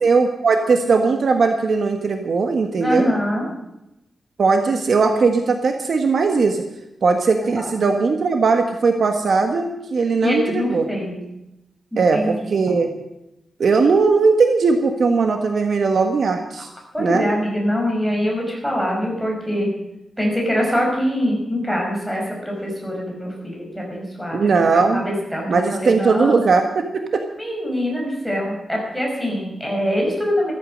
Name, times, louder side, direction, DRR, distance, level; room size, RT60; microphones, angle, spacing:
voice 1, 0.0-3.1 4.4-6.6 7.0-10.9 12.0-12.9 13.6-16.7 17.0-17.3 24.3-25.0 25.5-27.0, right 4 dB, 55° right, 5 dB, 1.4 m, -18 dB
voice 2, 2.8-3.5 7.4-7.8 10.2-11.2 11.9-12.7 16.9-19.7 20.2-26.4 27.4-30.5, equal, ahead, -1 dB, 5.9 m, -24 dB
15.0 x 14.0 x 6.5 m, 0.88 s
wide cardioid pair, 155°, 0 cm